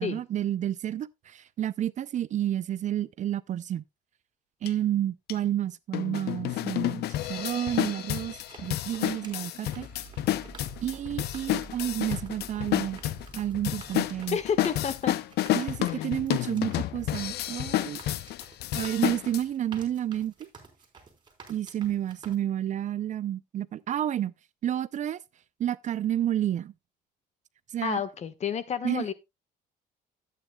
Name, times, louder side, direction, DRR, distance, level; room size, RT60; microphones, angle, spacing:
voice 1, 0.0-3.8 4.6-9.9 10.8-13.0 13.3-14.4 15.5-18.0 18.8-20.5 21.5-24.3 24.6-25.2 25.6-26.7 27.7-28.0 28.8-29.1, right 11 dB, 45° right, 0.5 m, -30 dB
sound 1, 4.7-4.8 5.3-5.4 5.9-19.4, left 14 dB, 75° left, 0.7 m, -30 dB
sound 2, 7.1-22.4, right 4 dB, 25° right, 3.8 m, -52 dB
sound 3, 9.7-14.9, right 4 dB, 10° right, 3.2 m, -48 dB
voice 2, 14.3-15.2 15.9-16.0 27.8-29.1, left 7 dB, 40° left, 1.4 m, -30 dB
13.0 x 9.1 x 2.3 m
cardioid pair, 110°, 17 cm